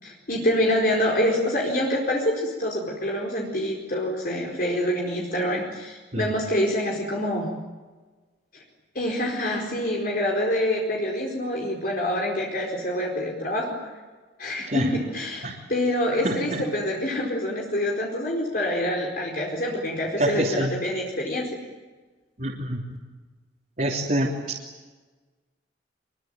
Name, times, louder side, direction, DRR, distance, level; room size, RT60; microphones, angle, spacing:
voice 1, 0.0-7.6 8.5-8.6 8.9-13.8 14.4-21.6, left 1 dB, 50° left, -1 dB, 4.6 m, -26 dB
voice 2, 16.2-16.6 20.2-20.7 22.4-22.8 23.8-24.3, right 1 dB, 45° right, -3 dB, 3.3 m, -26 dB
26.0 x 23.0 x 9.2 m, 1.3 s
head